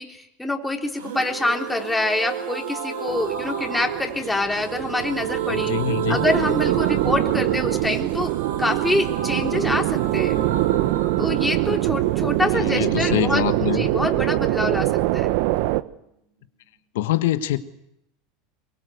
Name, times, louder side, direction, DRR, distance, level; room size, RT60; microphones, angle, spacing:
voice 1, 0.0-5.7 6.1-8.3 8.6-10.4 11.2-15.3, left 2 dB, 10° left, 1 dB, 3.8 m, -26 dB
sound 1, 0.9-14.6 14.8-14.9 15.2-15.3, right 9 dB, 90° right, 4.7 m, -31 dB
sound 2, 3.1-15.8, right 17 dB, 65° right, 1.2 m, -24 dB
voice 2, 5.5-6.2 12.6-13.8 16.9-17.6, left 13 dB, 75° left, 10 dB, 1.6 m, -24 dB
23.5 x 23.0 x 8.2 m, 0.81 s
hypercardioid pair, 100°, 0 cm